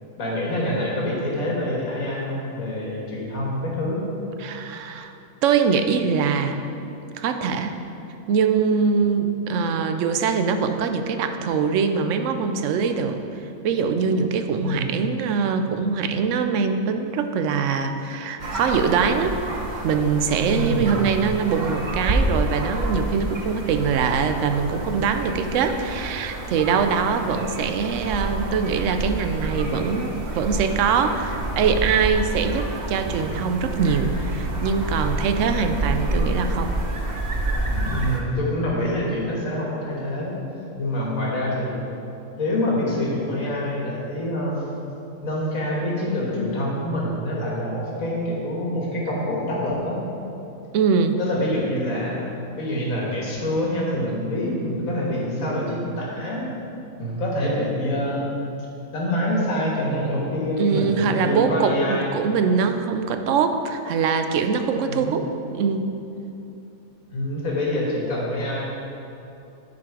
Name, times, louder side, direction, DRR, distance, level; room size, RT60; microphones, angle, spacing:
voice 1, 0.2-4.0 14.6-14.9 20.6-21.0 37.9-40.4 40.8-41.9 42.4-44.6 45.2-50.0 51.2-56.5 57.0-58.6 58.9-62.1 64.9-65.1 67.1-68.7, left 1 dB, 80° left, -4 dB, 1.9 m, -26 dB
voice 2, 4.4-5.1 5.4-6.6 7.1-7.7 8.3-13.2 13.6-19.3 19.8-36.7 50.7-51.2 60.6-65.9, right 5 dB, 70° right, 7 dB, 0.9 m, -23 dB
sound 1, 18.4-38.2, right 1 dB, 40° right, 0.8 m, -28 dB
9.6 x 5.1 x 4.7 m, 2.8 s
omnidirectional pair, 1.4 m